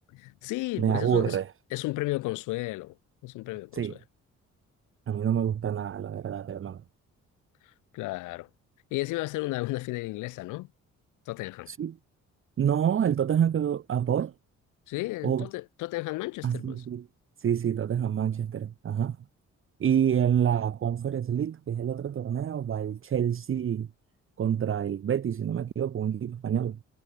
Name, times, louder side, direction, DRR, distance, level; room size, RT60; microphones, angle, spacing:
voice 1, 0.1-1.4 1.7-3.0 3.2-4.0 7.9-8.5 8.9-10.7 11.3-11.7 14.9-16.9, left 20 dB, 85° left, 0.5 m, -33 dB
voice 2, 0.8-1.5 3.7-4.0 5.1-6.8 11.7-12.0 12.6-14.3 15.2-15.5 16.4-17.1 17.4-19.2 19.8-23.9 24.4-26.8, right 9 dB, 45° right, 0.9 m, -27 dB
cardioid pair, 90°, 30 cm